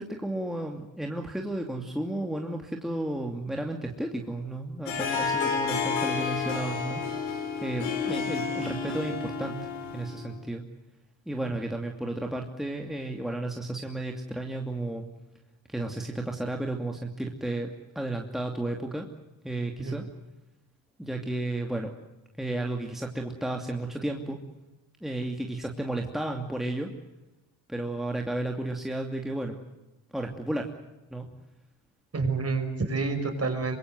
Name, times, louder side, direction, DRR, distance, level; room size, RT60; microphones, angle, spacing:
voice 1, 0.0-7.0 7.3-9.5 9.9-10.6 11.3-15.1 15.7-17.7 17.9-19.1 19.4-20.0 21.0-21.9 22.4-24.4 25.0-26.9 27.7-29.6 30.1-30.7 31.1-31.3, right 1 dB, ahead, 1 dB, 2.7 m, -33 dB
Harp, 4.9-10.3, left 5 dB, 85° left, 5.9 m, -30 dB
voice 2, 32.1-33.8, right 4 dB, 30° right, 7 dB, 5.7 m, -28 dB
25.0 x 22.5 x 7.8 m, 0.99 s
cardioid pair, 90°, 45 cm